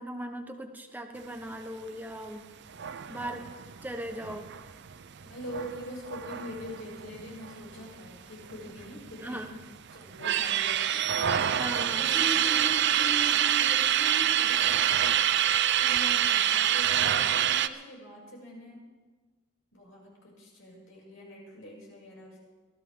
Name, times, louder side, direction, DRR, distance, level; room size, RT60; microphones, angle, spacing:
voice 1, 0.0-2.4 3.1-3.5 3.8-4.5 9.2-9.5 11.6-12.0, right 1 dB, 10° right, 4 dB, 1.1 m, -38 dB
sound 1, 2.7-7.9 8.1-8.2 8.5-9.5 9.9-17.7, right 10 dB, 55° right, 0.6 m, -26 dB
voice 2, 5.2-9.6 9.9-11.2 12.0-18.8 19.7-22.4, equal, 65° left, -3 dB, 6.8 m, -42 dB
23.0 x 15.5 x 3.7 m, 1.3 s
head